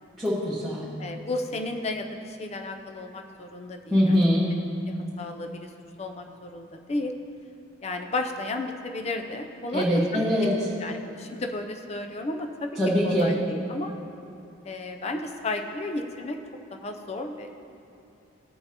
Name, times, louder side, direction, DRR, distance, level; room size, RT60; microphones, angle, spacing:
voice 1, 0.2-0.9 3.9-4.5 9.7-10.5 12.8-13.3, equal, ahead, -10 dB, 1.1 m, -22 dB
voice 2, 1.0-4.2 4.9-5.7 6.0-7.1 7.8-10.2 10.8-12.7 13.0-13.9 14.6-16.4 16.7-17.5, left 2 dB, 30° left, 4 dB, 0.5 m, -33 dB
16.0 x 5.6 x 2.9 m, 2.6 s
head